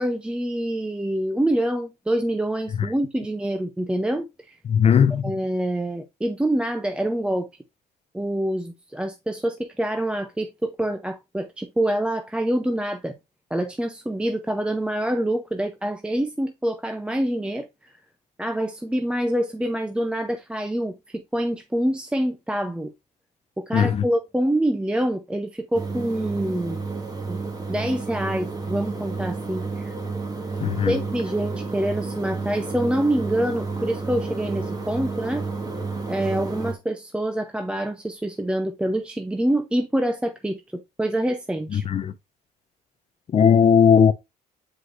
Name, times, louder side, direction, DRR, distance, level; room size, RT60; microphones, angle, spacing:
voice 1, 0.0-4.6 5.2-7.5 8.1-13.1 13.5-17.9 18.4-22.9 23.6-27.0 27.3-27.4 27.7-29.9 30.9-35.5 36.1-41.9, right 1 dB, 5° right, 0.6 m, -26 dB
voice 2, 4.7-5.2 23.7-24.0 30.6-30.9 41.7-42.1 43.3-44.1, left 7 dB, 40° left, 0.5 m, -17 dB
sound 1, 25.7-36.7, right 4 dB, 20° right, 1.7 m, -31 dB
7.7 x 4.8 x 2.5 m
cardioid pair, 110°, 17 cm